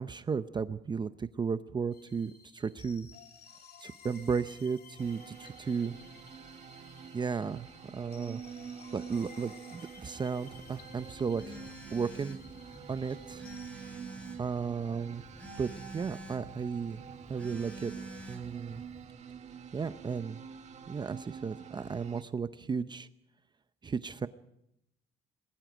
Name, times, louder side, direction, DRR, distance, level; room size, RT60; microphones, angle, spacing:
voice 1, 0.0-3.1 3.8-5.9 7.1-8.4 8.9-11.6 11.9-12.4 12.9-13.5 14.4-15.2 15.6-17.0 17.3-17.9 18.3-18.8 19.7-20.4 20.9-23.1 23.8-24.3, right 5 dB, 25° right, 12 dB, 0.7 m, -34 dB
sound 1, 1.9-13.7, left 6 dB, 70° left, 3.1 m, -56 dB
sound 2, 5.0-22.2, right 7 dB, 45° right, 1.9 m, -47 dB
Telephone, 10.5-19.1, right 1 dB, 5° left, 4.3 m, -49 dB
27.0 x 20.5 x 5.1 m, 0.81 s
cardioid pair, 110°, 17 cm